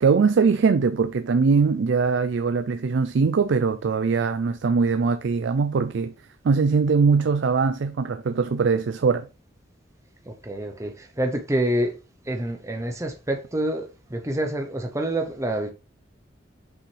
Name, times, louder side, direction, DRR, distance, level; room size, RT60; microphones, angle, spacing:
voice 1, 0.0-6.1 6.4-9.3, right 5 dB, 70° right, 0.4 m, -21 dB
voice 2, 10.2-12.0 12.2-15.7, right 1 dB, 15° right, 0.7 m, -27 dB
6.1 x 5.5 x 3.2 m
head